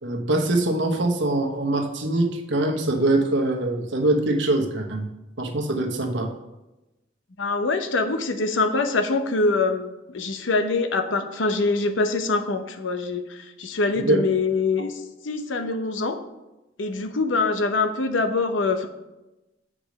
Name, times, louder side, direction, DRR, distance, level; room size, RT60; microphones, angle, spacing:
voice 1, 0.0-5.1 5.4-6.3 14.0-14.2, right 2 dB, 75° right, 3 dB, 1.1 m, -23 dB
voice 2, 7.4-15.0 15.2-16.2 16.8-18.9, left 3 dB, 90° left, 7 dB, 0.8 m, -24 dB
7.8 x 5.0 x 5.2 m, 0.99 s
head